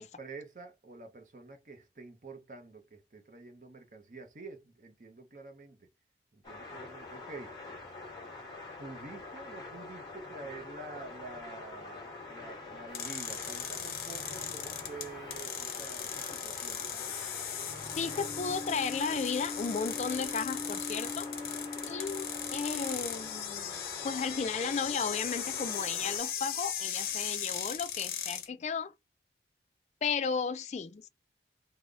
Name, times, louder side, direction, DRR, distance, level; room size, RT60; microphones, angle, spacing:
voice 1, 0.0-5.9 6.3-7.5 8.8-16.9, right 3 dB, 45° right, 0.6 m, -48 dB
sound 1, 6.4-26.2, left 3 dB, 25° left, 1.2 m, -45 dB
sound 2, 12.4-23.4, left 3 dB, 5° left, 1.2 m, -45 dB
sound 3, 12.9-28.5, left 9 dB, 55° left, 0.8 m, -38 dB
voice 2, 18.0-21.3 21.9-28.9 30.0-31.1, left 5 dB, 40° left, 0.3 m, -34 dB
3.7 x 2.0 x 3.3 m
head